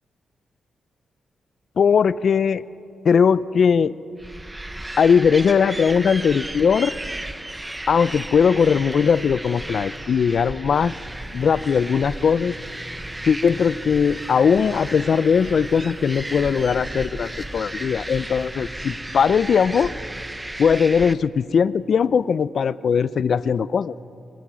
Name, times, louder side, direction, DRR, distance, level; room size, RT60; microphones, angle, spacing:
voice 1, 1.8-2.6 3.0-3.9 5.0-7.0 7.9-10.9 11.3-12.5 13.2-19.9 20.6-23.9, left 6 dB, 60° left, 18 dB, 0.6 m, -19 dB
sound 1, 4.2-21.1, right 1 dB, 10° right, 0.9 m, -34 dB
sound 2, 10.8-20.3, equal, 10° left, 1.5 m, -43 dB
28.5 x 25.5 x 6.3 m, 2.7 s
cardioid pair, 90°, 0 cm